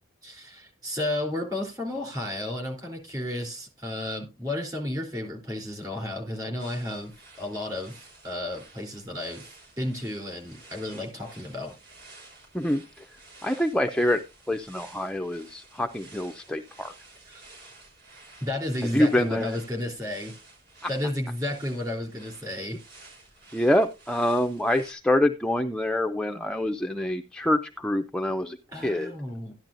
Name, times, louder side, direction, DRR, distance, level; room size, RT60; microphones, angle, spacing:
voice 1, 0.2-7.1 7.4-11.7 17.3-17.5 18.4-20.4 20.9-22.8 28.7-29.5, left 1 dB, 20° right, 2 dB, 3.3 m, -32 dB
sound 1, 6.6-24.9, right 3 dB, 50° right, 4.1 m, -52 dB
voice 2, 12.5-13.1 13.4-14.2 14.5-16.9 18.9-19.6 23.5-28.6 28.8-29.1, left 1 dB, 5° left, 5 dB, 0.4 m, -26 dB
13.0 x 10.5 x 2.6 m, 0.26 s
head